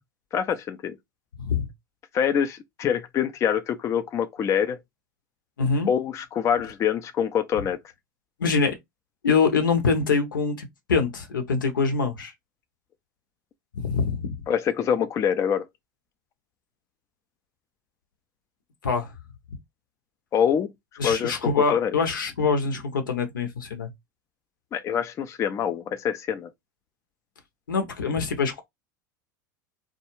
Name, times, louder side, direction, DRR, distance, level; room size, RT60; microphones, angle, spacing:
voice 1, 0.3-1.0 2.1-4.8 5.9-7.8 14.5-15.7 20.3-20.7 21.0-21.9 24.7-26.5, left 8 dB, 30° left, 0.4 m, -25 dB
voice 2, 1.4-1.7 5.6-5.9 8.4-8.8 9.2-12.3 13.7-14.4 18.8-19.1 21.0-23.9 27.7-28.6, left 5 dB, 85° left, 0.7 m, -24 dB
2.3 x 2.0 x 3.0 m
hypercardioid pair, 85°, 11 cm